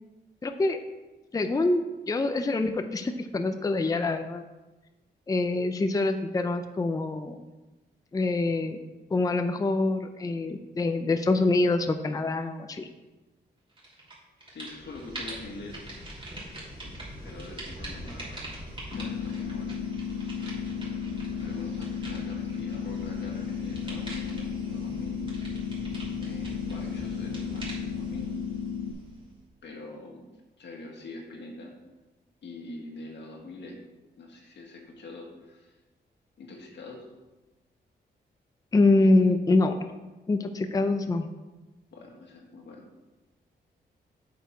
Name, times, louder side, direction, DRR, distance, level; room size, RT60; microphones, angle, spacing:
voice 1, 0.4-0.8 1.3-4.4 5.3-7.4 8.1-8.8 9.1-12.9 38.7-39.9 40.3-41.3, left 2 dB, 20° left, 7 dB, 0.5 m, -25 dB
sound 1, 13.8-14.1 14.4-29.4, right 1 dB, 30° right, 2.8 m, -42 dB
voice 2, 14.5-15.8 16.8-19.8 20.8-25.2 26.2-28.3 29.6-30.3 30.6-31.7 32.4-33.8 34.2-35.8 36.4-37.1 40.5-40.6 41.9-42.8, left 2 dB, 85° left, 0 dB, 1.8 m, -44 dB
sound 2, 18.9-28.9, left 7 dB, 60° left, 0.7 m, -34 dB
8.0 x 6.6 x 4.6 m, 1.1 s
wide cardioid pair, 120°, 18 cm